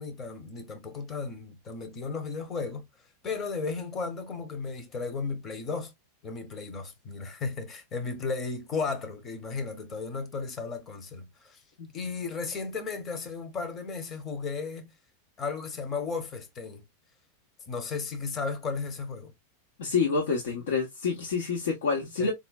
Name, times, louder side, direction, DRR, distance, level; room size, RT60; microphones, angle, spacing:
voice 1, 0.0-2.8 3.2-5.9 6.2-11.6 11.9-14.9 15.4-16.8 17.7-19.3 22.2-22.3, left 4 dB, 20° left, 0.7 m, -34 dB
voice 2, 19.8-22.3, left 5 dB, 85° left, 1.1 m, -28 dB
4.8 x 2.1 x 2.2 m
supercardioid pair, 160°, 0 cm